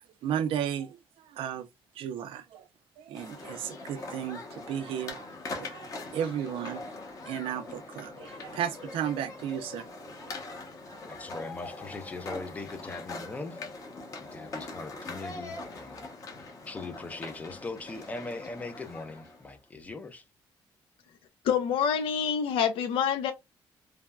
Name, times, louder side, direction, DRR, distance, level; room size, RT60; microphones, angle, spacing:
voice 1, 0.2-1.7 2.0-2.6 3.0-5.3 5.6-6.8 7.3-10.4 10.9-11.0, right 9 dB, 80° right, 0.4 m, -34 dB
sound 1, 3.1-19.6, left 3 dB, 40° left, 0.8 m, -42 dB
voice 2, 11.1-13.6 14.3-16.1 16.7-20.2, left 3 dB, 15° left, 0.4 m, -40 dB
voice 3, 21.4-23.3, left 7 dB, 85° left, 0.4 m, -26 dB
3.2 x 2.1 x 2.3 m
cardioid pair, 170°, 9 cm